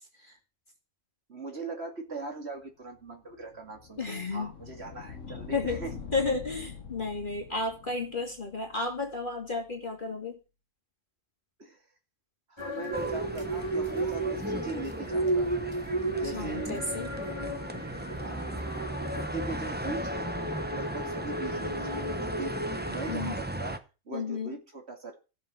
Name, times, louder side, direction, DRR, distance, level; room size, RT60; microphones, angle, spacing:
voice 1, 1.3-5.9 11.6-11.8 12.5-15.5 16.2-16.8 18.2-18.6 19.1-22.6 22.9-23.8 24.1-25.2, right 3 dB, 50° right, 4 dB, 2.6 m, -40 dB
sound 1, 3.0-9.8, left 5 dB, 65° left, 1.6 m, -45 dB
voice 2, 4.0-4.5 5.5-5.8 6.1-10.4 16.3-17.1 23.1-23.3 24.1-24.5, left 3 dB, 35° left, 2 dB, 2.4 m, -32 dB
sound 2, 12.6-23.2, right 1 dB, 20° left, 2.1 m, -34 dB
sound 3, 12.9-23.8, right 1 dB, 10° right, 0.7 m, -37 dB
15.5 x 7.4 x 6.0 m, 0.32 s
omnidirectional pair, 1.4 m